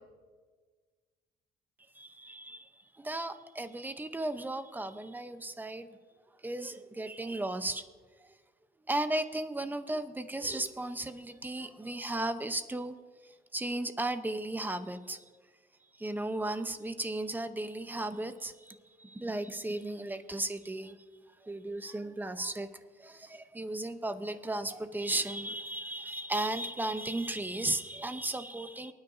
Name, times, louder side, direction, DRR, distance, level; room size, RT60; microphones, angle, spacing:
voice 1, 2.0-2.7 3.0-5.9 6.4-7.8 8.9-12.9 13.5-15.2 16.0-21.0 21.5-22.7 23.0-28.9, right 2 dB, 10° right, 10 dB, 0.8 m, -35 dB
23.5 x 9.7 x 2.7 m, 1.5 s
cardioid pair, 110°, 17 cm